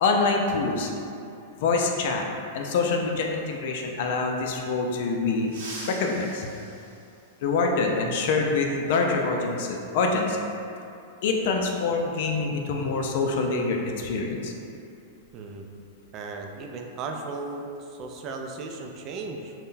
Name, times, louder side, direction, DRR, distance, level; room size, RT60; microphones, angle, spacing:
voice 1, 0.0-0.9 1.6-2.3 2.5-5.5 5.9-6.5 7.4-10.4 11.2-14.5, left 3 dB, 65° left, 1 dB, 0.4 m, -25 dB
sound 1, 5.4-7.8 9.5-9.6 10.8-10.9 12.5-12.7 13.1-13.3 13.7-15.9 16.2-16.4 16.9-17.3, right 2 dB, 70° right, 0.7 m, -45 dB
voice 2, 15.3-15.6 16.1-19.5, right 3 dB, 40° right, 2 dB, 0.3 m, -36 dB
3.6 x 2.2 x 2.6 m, 2.6 s
hypercardioid pair, 120°, 0 cm